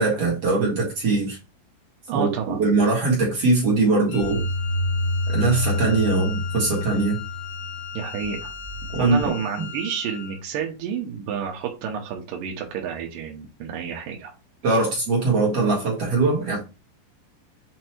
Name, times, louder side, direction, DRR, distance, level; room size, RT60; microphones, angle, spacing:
voice 1, 0.0-1.4 2.1-4.4 5.3-7.2 8.9-9.3 9.6-9.7 14.6-16.6, right 3 dB, 50° right, 1.9 m, -21 dB
voice 2, 2.1-2.6 7.9-8.5 9.0-14.3, right 7 dB, 75° right, 2.1 m, -30 dB
Wind instrument woodwind instrument, 4.1-10.4, left 9 dB, 75° left, 2.4 m, -38 dB
sound 1, 4.2-9.3, left 1 dB, 90° left, 3.9 m, -28 dB
7.7 x 3.0 x 4.5 m
omnidirectional pair, 5.2 m